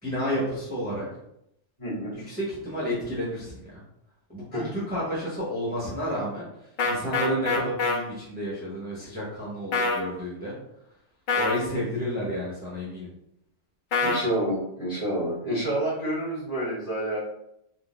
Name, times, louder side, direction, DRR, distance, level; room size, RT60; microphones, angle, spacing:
voice 1, 0.0-1.0 2.1-3.8 4.3-6.5 6.8-10.5 11.3-13.1, equal, 10° right, -8 dB, 0.9 m, -31 dB
voice 2, 1.8-2.2 4.5-4.7 14.0-17.2, right 1 dB, 45° left, -10 dB, 1.8 m, -28 dB
sound 1, 6.8-8.0 9.7-10.0 11.3-11.6 13.9-14.2, left 3 dB, 60° left, 0.5 m, -24 dB
3.7 x 2.6 x 2.4 m, 0.79 s
omnidirectional pair, 1.3 m